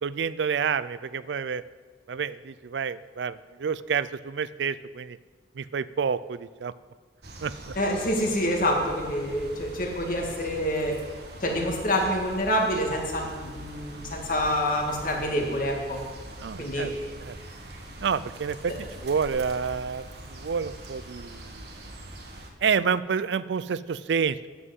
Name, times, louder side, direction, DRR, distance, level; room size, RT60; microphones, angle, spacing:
voice 1, 0.0-1.6 2.1-5.2 5.6-6.7 7.4-7.5 16.4-16.9 17.2-17.4 18.0-21.7 22.6-24.5, right 6 dB, 85° right, 17 dB, 0.4 m, -29 dB
sound 1, 7.2-22.5, right 1 dB, 65° right, 1.5 m, -43 dB
voice 2, 7.8-11.0 11.4-16.0 16.6-17.0, equal, 50° left, 1 dB, 2.1 m, -27 dB
9.7 x 7.9 x 7.7 m, 1.4 s
head